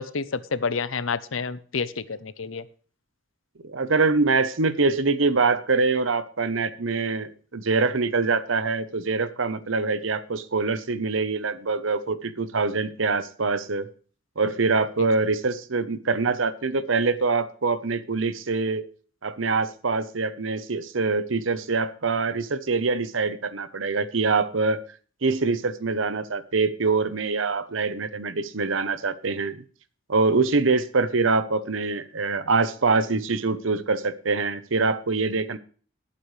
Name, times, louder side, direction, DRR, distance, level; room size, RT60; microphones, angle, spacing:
voice 1, 0.0-2.6, left 5 dB, 90° left, 15 dB, 0.8 m, -29 dB
voice 2, 3.6-13.9 14.4-18.8 19.2-24.8 25.2-29.6 30.1-35.6, right 4 dB, 85° right, 14 dB, 0.9 m, -24 dB
19.5 x 8.6 x 3.3 m, 0.41 s
head